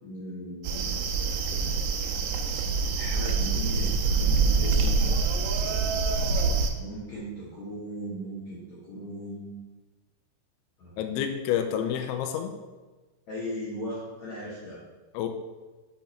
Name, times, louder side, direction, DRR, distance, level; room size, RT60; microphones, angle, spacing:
voice 1, 0.0-1.3 2.9-5.1 6.8-9.5 10.8-11.0 13.3-14.8, equal, 65° left, -8 dB, 1.7 m, -38 dB
sound 1, 0.6-6.7, right 4 dB, 85° right, 2.6 m, -25 dB
voice 2, 11.0-12.6 15.1-15.3, left 9 dB, 85° left, 6 dB, 2.9 m, -29 dB
6.8 x 5.6 x 4.3 m, 1.2 s
omnidirectional pair, 5.4 m